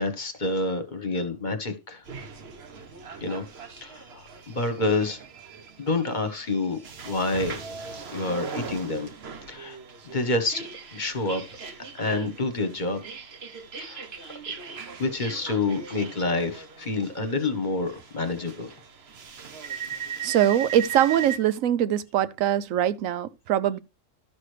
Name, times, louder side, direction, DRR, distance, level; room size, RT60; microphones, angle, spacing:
voice 1, 0.0-2.0 3.2-3.4 3.8-5.2 5.8-6.8 7.1-7.6 8.1-9.1 9.5-9.8 10.0-11.5 11.8-13.0 13.8-14.3 15.0-18.7, left 2 dB, 40° left, 1.2 m, -28 dB
sound 1, 2.1-21.4, right 6 dB, 55° right, 1.2 m, -39 dB
voice 2, 20.2-23.8, right 11 dB, 85° right, 1.0 m, -23 dB
12.5 x 6.2 x 3.3 m
omnidirectional pair, 1.3 m